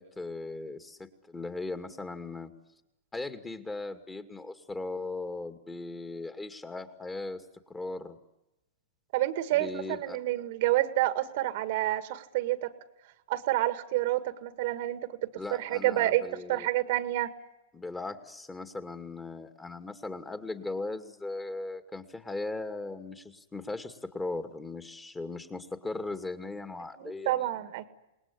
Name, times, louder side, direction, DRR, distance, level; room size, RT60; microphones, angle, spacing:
voice 1, 0.0-2.5 3.1-8.2 9.5-10.2 15.4-16.7 17.7-27.5, left 3 dB, 10° left, 8 dB, 2.4 m, -38 dB
voice 2, 9.1-12.7 13.3-17.3 27.0-27.9, right 15 dB, 55° right, 11 dB, 2.0 m, -29 dB
28.0 x 20.0 x 9.8 m, 0.96 s
figure-of-eight pair, 105°, 0 cm